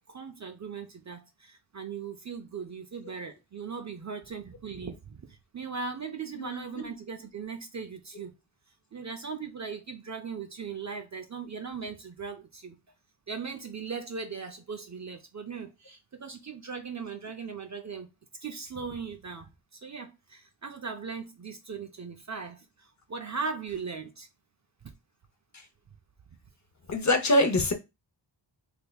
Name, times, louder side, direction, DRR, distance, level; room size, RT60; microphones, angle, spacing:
voice 1, 0.1-8.3 8.9-12.8 13.3-18.1 18.4-24.3 24.8-24.9, right 5 dB, 40° right, 0.4 m, -39 dB
voice 2, 26.9-27.7, left 1 dB, 40° left, 0.7 m, -24 dB
3.4 x 3.2 x 2.3 m
wide cardioid pair, 125°, 46 cm